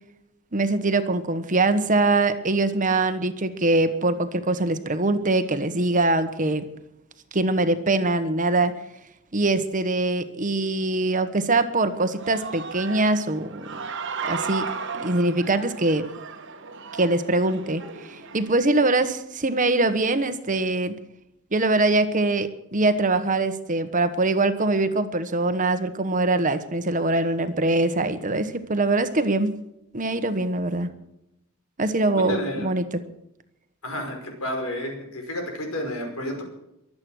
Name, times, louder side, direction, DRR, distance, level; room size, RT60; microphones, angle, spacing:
voice 1, 0.5-6.6 7.3-8.7 9.3-13.8 14.2-14.7 14.9-16.1 16.9-17.8 18.1-21.0 21.5-29.6 29.9-30.9 31.8-32.8, right 2 dB, 40° right, 10 dB, 1.3 m, -23 dB
Human voice / Cheering, 11.9-18.5, right 5 dB, 60° right, 1.5 m, -35 dB
voice 2, 32.1-32.7 33.8-36.4, left 1 dB, 80° left, 3 dB, 5.5 m, -31 dB
23.5 x 8.7 x 6.4 m, 0.82 s
head